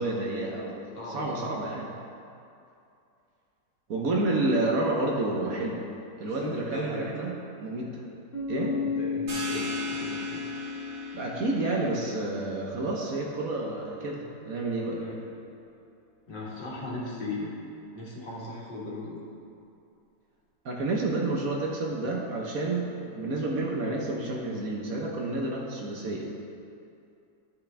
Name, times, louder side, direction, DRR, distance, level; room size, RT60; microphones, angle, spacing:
voice 1, 0.0-1.9 3.9-5.8 6.2-7.3 7.6-8.0 8.5-8.8 11.1-15.0 20.6-26.3, right 2 dB, 55° right, -1 dB, 1.3 m, -30 dB
voice 2, 1.0-1.5 6.2-7.1 8.8-10.4 14.8-15.2 16.3-17.5 17.9-19.2, left 2 dB, 75° left, -5 dB, 2.3 m, -37 dB
Bass guitar, 8.3-12.2, left 5 dB, 35° left, 1.6 m, -33 dB
sound 1, 9.3-14.6, right 2 dB, 75° right, 2.8 m, -41 dB
13.0 x 6.1 x 3.4 m, 2.6 s
omnidirectional pair, 1.9 m